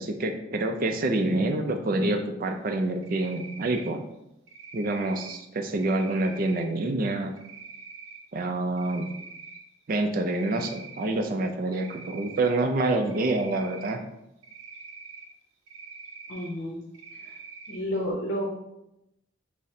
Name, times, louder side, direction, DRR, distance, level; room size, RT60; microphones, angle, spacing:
voice 1, 0.0-4.0 4.7-7.3 8.3-9.1 9.9-14.0, right 2 dB, 45° right, 5 dB, 0.4 m, -27 dB
Cricket, 3.0-3.9 4.5-5.3 5.8-6.6 7.4-8.2 8.6-9.6 10.0-11.1 11.7-12.5 13.1-13.9 14.4-15.3 15.7-16.5 16.9-17.8, right 5 dB, 85° right, 0.6 m, -45 dB
voice 2, 16.3-16.8 17.2-17.4 17.7-18.5, equal, 65° left, -3 dB, 0.7 m, -31 dB
3.6 x 2.1 x 4.2 m, 0.85 s
head